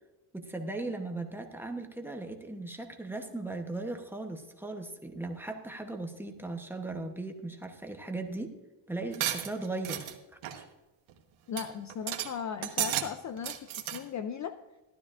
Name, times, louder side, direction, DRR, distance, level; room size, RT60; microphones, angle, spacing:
voice 1, 0.3-8.6 8.9-10.1 10.6-10.7, right 2 dB, 5° right, 3 dB, 0.8 m, -38 dB
sound 1, 9.1-10.1 10.4-10.6 11.1-11.2 11.6-11.7 11.9-12.3 12.6-13.1 13.4-14.0, right 11 dB, 75° right, 1.3 m, -33 dB
voice 2, 11.5-14.6, left 7 dB, 40° left, 9 dB, 0.4 m, -37 dB
14.5 x 12.0 x 2.5 m, 1.1 s
cardioid pair, 155°, 48 cm